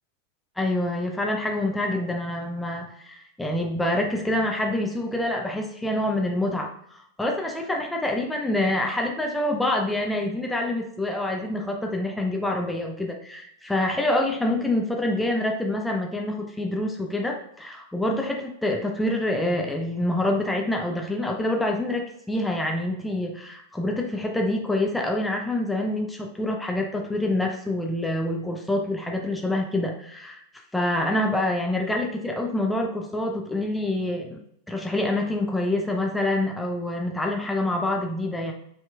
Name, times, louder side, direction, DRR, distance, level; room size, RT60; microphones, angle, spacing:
voice 1, 0.6-30.4 30.7-34.4 34.7-38.5, left 1 dB, 5° left, 1 dB, 0.5 m, -26 dB
5.6 x 2.9 x 2.3 m, 0.73 s
figure-of-eight pair, 90°, 0 cm